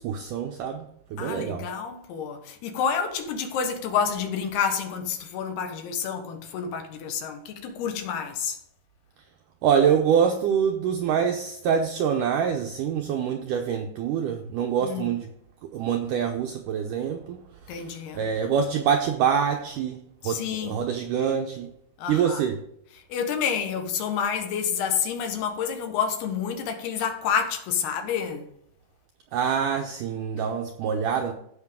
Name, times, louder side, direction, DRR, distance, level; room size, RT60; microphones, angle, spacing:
voice 1, 0.0-1.7 9.6-15.3 15.7-17.4 17.7-21.7 22.1-22.6 29.3-31.3, right 7 dB, 80° right, 1.8 m, -25 dB
voice 2, 1.2-8.6 14.8-15.1 17.7-18.2 20.2-20.8 22.0-22.4 23.1-28.5, left 7 dB, 80° left, 3.3 m, -29 dB
15.5 x 5.9 x 3.7 m
omnidirectional pair, 4.6 m